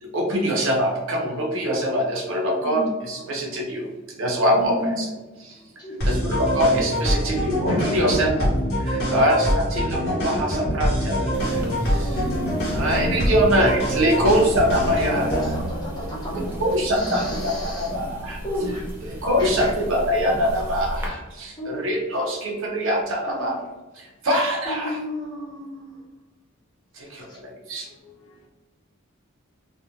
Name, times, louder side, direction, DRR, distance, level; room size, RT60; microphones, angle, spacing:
voice 1, 0.0-5.1 5.4-5.6 6.0-8.5 8.8-12.2 12.7-15.4 16.3-18.4 19.0-23.6 23.9-25.0 26.9-27.9, equal, 65° right, 0 dB, 0.6 m, -24 dB
voice 2, 4.5-5.1 5.8-5.9 7.9-8.3 12.0-12.4 12.6-12.7 14.1-14.3 15.0-16.6 16.9-17.9 18.4-18.8 19.4-19.7 21.6-21.8 23.3-23.5 24.6-26.0 27.2-27.4, equal, 20° left, -7 dB, 0.9 m, -32 dB
voice 3, 5.5-6.0 27.8-28.5, left 3 dB, 90° left, 0 dB, 0.6 m, -55 dB
sound 1, 6.0-15.6, equal, 50° left, 0.8 m, -24 dB
water kraan, 11.3-21.1, equal, 10° right, 0.4 m, -34 dB
2.4 x 2.1 x 2.9 m, 1.2 s
head